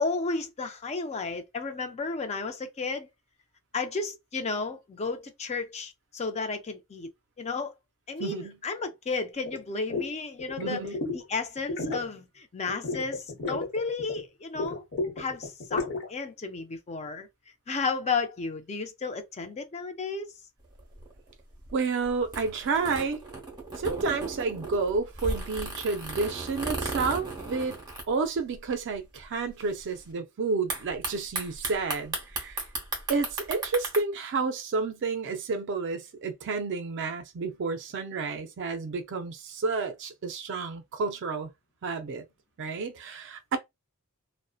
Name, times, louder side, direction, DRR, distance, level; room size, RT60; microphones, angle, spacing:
voice 1, 0.0-3.1 3.7-7.1 7.4-7.7 8.1-10.8 11.1-14.8 15.2-17.3 17.7-20.3, left 4 dB, 30° left, 0.4 m, -33 dB
voice 2, 8.2-8.6 10.6-11.0 21.7-23.2 23.8-27.8 28.1-32.6 33.1-41.5 41.8-42.2 42.6-43.6, right 4 dB, 55° right, 0.4 m, -30 dB
sound 1, 9.5-9.6 9.9-10.1 10.4-11.2 11.6-12.1 12.7-14.2 14.5-16.1, left 3 dB, 50° left, 1.0 m, -33 dB
sound 2, 20.6-28.7 29.0-29.1 29.2-29.7 30.7-34.0, right 2 dB, 20° right, 0.8 m, -36 dB
2.6 x 2.1 x 2.3 m
head